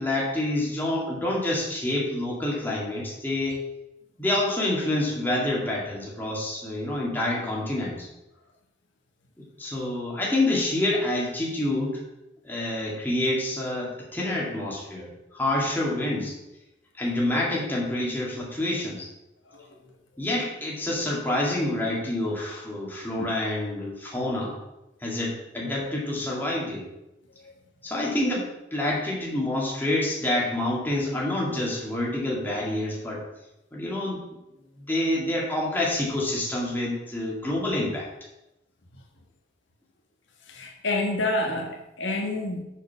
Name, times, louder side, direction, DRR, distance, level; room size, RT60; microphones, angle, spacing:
voice 1, 0.0-3.6 4.2-8.1 9.4-12.0 12.4-16.4 16.9-19.1 20.2-24.6 25.0-26.8 27.8-33.2 33.7-34.2 34.8-38.1, left 1 dB, 10° left, -4 dB, 2.0 m, -27 dB
voice 2, 40.5-42.6, left 2 dB, 75° left, 2 dB, 1.3 m, -29 dB
6.6 x 6.5 x 5.7 m, 0.93 s
head